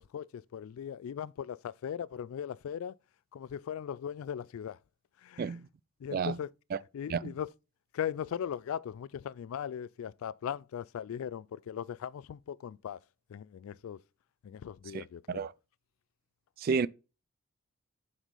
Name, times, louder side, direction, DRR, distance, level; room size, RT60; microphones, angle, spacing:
voice 1, 0.0-3.0 3.3-4.8 5.2-5.6 6.0-6.5 6.9-7.5 7.9-13.0 13.3-14.0 14.4-15.5, left 8 dB, 85° left, 0.3 m, -39 dB
voice 2, 14.9-15.5 16.6-16.9, right 5 dB, 45° right, 0.3 m, -31 dB
6.0 x 5.4 x 4.1 m
head